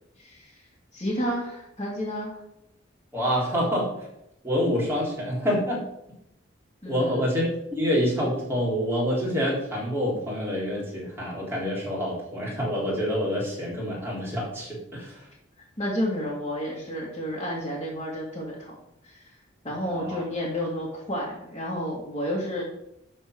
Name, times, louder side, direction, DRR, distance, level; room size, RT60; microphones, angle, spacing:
voice 1, 0.2-0.6 0.9-2.4 6.8-7.2 15.8-18.7 19.0-19.3 19.6-22.6, equal, 30° left, -6 dB, 2.4 m, -31 dB
voice 2, 3.1-3.9 4.4-5.8 6.8-15.2 19.9-20.2, equal, 10° right, -5 dB, 4.0 m, -27 dB
12.5 x 4.5 x 6.3 m, 0.81 s
head